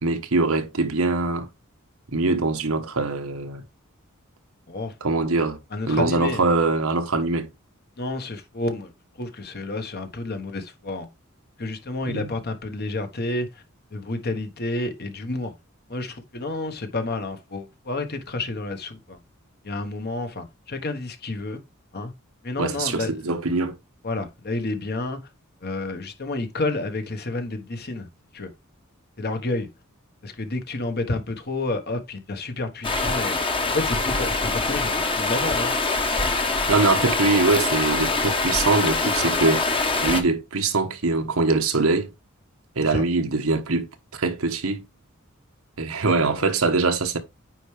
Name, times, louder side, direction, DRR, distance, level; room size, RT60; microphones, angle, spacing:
voice 1, 0.0-1.5 2.1-3.6 5.0-5.6 5.9-7.5 12.1-12.4 22.6-23.8 36.7-39.6 40.0-42.1 42.8-44.8 45.8-47.2, right 3 dB, 90° right, 1.2 m, -23 dB
voice 2, 5.7-6.5 8.0-8.9 9.2-11.1 11.6-13.6 13.9-15.5 15.9-19.2 19.6-21.6 21.9-22.1 22.4-23.3 24.0-25.2 25.6-28.1 28.3-28.5 29.2-29.7 30.2-33.4 33.7-35.7 42.9-43.0 46.3-46.4, left 2 dB, 50° left, 1.3 m, -30 dB
Stream, 32.8-40.2, left 3 dB, 25° left, 1.1 m, -24 dB
9.2 x 4.6 x 3.3 m
head